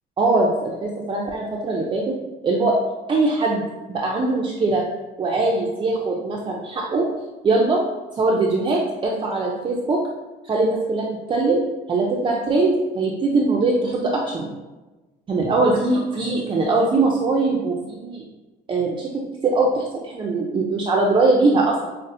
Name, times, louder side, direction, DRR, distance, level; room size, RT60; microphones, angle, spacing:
voice 1, 0.2-2.1 2.4-2.8 3.1-3.6 3.9-4.8 5.2-7.1 7.4-7.9 8.1-10.0 10.4-11.6 11.9-14.5 15.3-18.2 18.7-21.9, right 3 dB, 30° right, -2 dB, 0.4 m, -21 dB
5.3 x 2.1 x 2.6 m, 1.1 s
cardioid pair, 110°, 17 cm